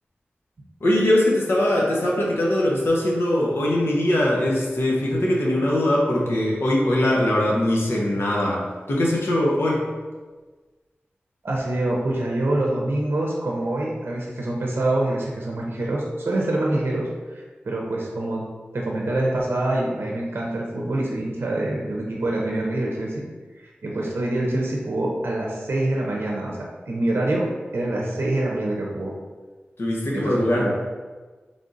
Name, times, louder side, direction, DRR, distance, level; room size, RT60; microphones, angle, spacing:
voice 1, 0.8-9.8 29.8-30.7, left 1 dB, 80° left, -3 dB, 0.9 m, -21 dB
voice 2, 11.4-17.1 17.6-18.4 18.7-23.2 23.8-29.1 30.1-30.7, right 1 dB, 70° right, -2 dB, 0.6 m, -25 dB
3.5 x 2.5 x 3.8 m, 1.4 s
wide cardioid pair, 60°, 4 cm